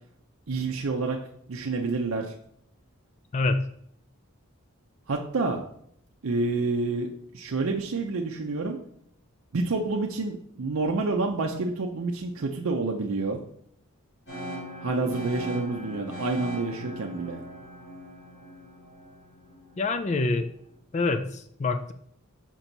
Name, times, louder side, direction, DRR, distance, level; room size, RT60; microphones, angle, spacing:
voice 1, 0.5-1.2 1.5-2.3 5.1-5.6 6.2-8.8 9.5-13.4 14.8-17.4, right 3 dB, 70° right, 1 dB, 0.6 m, -28 dB
sound 1, 14.3-20.2, equal, 55° left, 2.6 m, -40 dB
voice 2, 19.8-20.5 20.9-21.9, left 3 dB, 30° left, 9 dB, 0.3 m, -26 dB
6.0 x 4.5 x 3.9 m, 0.68 s
head